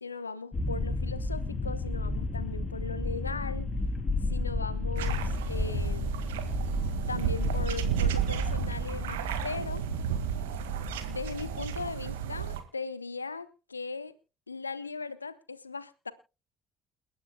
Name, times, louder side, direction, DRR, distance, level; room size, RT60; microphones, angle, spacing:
voice 1, 0.0-3.7 4.2-6.2 7.1-9.8 11.1-14.1 14.5-16.1, left 4 dB, 85° left, 0.8 m, -38 dB
sound 1, 0.5-11.7, left 2 dB, 30° left, 2.8 m, -33 dB
sound 2, 5.0-12.6, right 10 dB, 70° right, 1.8 m, -33 dB
29.0 x 9.9 x 2.2 m
figure-of-eight pair, 55°, 0 cm